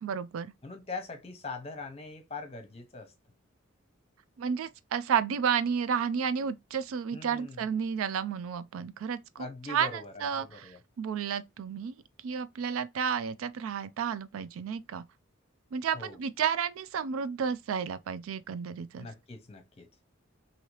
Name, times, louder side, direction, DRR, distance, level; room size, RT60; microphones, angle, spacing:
voice 1, 0.0-0.5 4.4-10.7 11.0-11.9 12.2-15.0 15.7-19.1, right 7 dB, 80° right, 0.3 m, -32 dB
voice 2, 0.6-3.1 7.1-7.6 9.4-10.8 15.9-16.2 19.0-19.9, left 3 dB, 30° left, 0.8 m, -42 dB
2.8 x 2.8 x 3.0 m
head